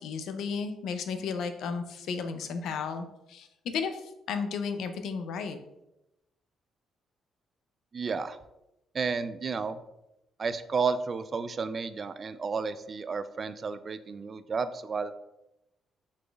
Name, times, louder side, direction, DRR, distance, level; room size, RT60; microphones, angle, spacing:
voice 1, 0.0-5.6, left 5 dB, 80° left, 8 dB, 0.4 m, -34 dB
voice 2, 7.9-8.4 8.9-9.8 10.4-15.1, right 5 dB, 40° right, 12 dB, 0.3 m, -32 dB
4.9 x 4.1 x 2.3 m, 0.90 s
cardioid pair, 90°, 0 cm